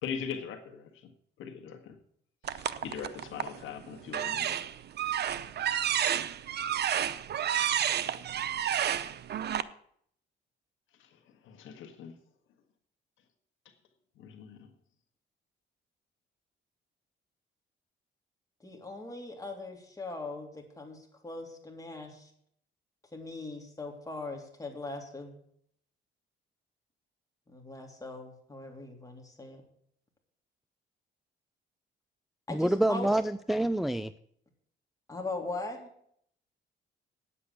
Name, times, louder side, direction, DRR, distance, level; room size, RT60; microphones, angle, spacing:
voice 1, 0.0-1.1 1.4-1.9 2.4-4.6 11.0-11.1 11.4-12.2 14.2-14.7, left 7 dB, 85° left, 6 dB, 1.6 m, -41 dB
sound 1, 2.4-3.6 4.1-9.6, right 10 dB, 55° right, 0.7 m, -30 dB
voice 2, 18.6-22.3 23.1-25.4 27.5-29.6 32.5-33.1 35.1-35.9, left 2 dB, 15° left, 1 dB, 3.3 m, -40 dB
voice 3, 32.5-34.1, right 1 dB, ahead, 12 dB, 0.4 m, -27 dB
9.7 x 8.4 x 8.2 m, 0.66 s
cardioid pair, 90°, 20 cm